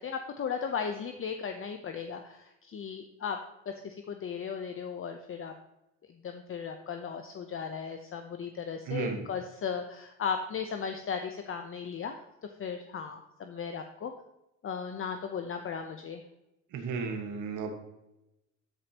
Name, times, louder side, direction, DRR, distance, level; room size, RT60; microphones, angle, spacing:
voice 1, 0.0-3.4 3.7-5.5 6.2-12.2 12.6-14.1 14.6-16.2, left 6 dB, 45° left, 6 dB, 0.8 m, -36 dB
voice 2, 8.9-9.2 16.7-17.7, right 5 dB, 85° right, 4 dB, 1.6 m, -34 dB
13.0 x 5.3 x 2.9 m, 0.90 s
cardioid pair, 90°, 30 cm